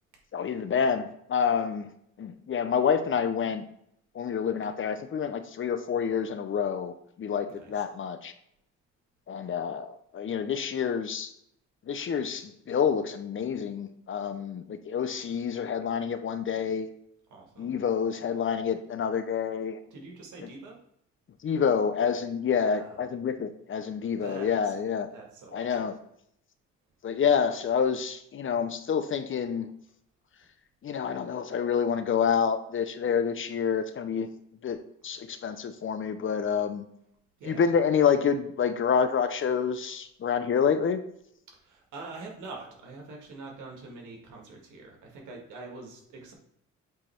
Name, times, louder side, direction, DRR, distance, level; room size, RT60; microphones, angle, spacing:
voice 1, 0.3-1.9 2.2-3.6 4.1-6.9 7.2-8.3 9.3-11.3 11.9-16.9 17.6-19.8 21.4-25.1 25.5-26.0 27.0-29.7 30.8-34.3 34.6-36.8 37.4-41.0, left 7 dB, 40° left, 10 dB, 0.6 m, -28 dB
voice 2, 7.5-7.8 17.3-17.7 19.9-20.8 22.6-23.1 24.2-24.7 25.1-25.9 37.4-37.7 41.5-46.3, right 3 dB, 80° right, 1 dB, 1.7 m, -45 dB
7.6 x 3.1 x 4.4 m, 0.73 s
cardioid pair, 90°, 30 cm